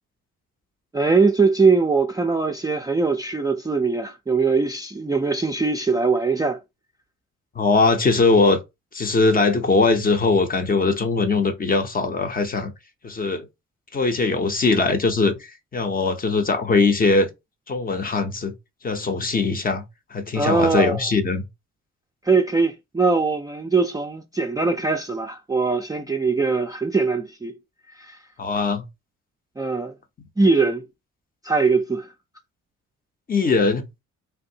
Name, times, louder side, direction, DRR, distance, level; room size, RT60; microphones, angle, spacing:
voice 1, 0.9-6.6 20.3-21.0 22.2-27.6 27.9-28.2 29.6-29.9 30.4-30.8 31.4-32.1, right 4 dB, 15° right, 0.4 m, -21 dB
voice 2, 7.6-8.6 8.9-12.7 13.0-13.5 13.9-17.3 17.7-18.5 18.8-19.8 20.1-21.4 28.4-28.8 33.3-33.9, left 3 dB, 30° left, 0.7 m, -21 dB
3.4 x 2.5 x 2.7 m
cardioid pair, 90°, 30 cm